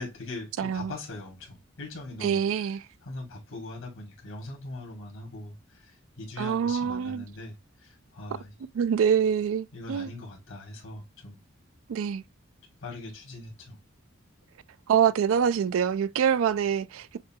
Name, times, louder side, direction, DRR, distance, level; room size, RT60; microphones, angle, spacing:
voice 1, 0.0-2.5 3.0-8.5 9.7-11.4 12.8-13.8, left 2 dB, 80° left, 1.9 m, -41 dB
voice 2, 0.6-0.9 2.2-2.8 6.4-7.2 8.7-10.1 11.9-12.2 14.9-17.2, right 8 dB, 80° right, 0.3 m, -25 dB
6.6 x 2.2 x 2.7 m
head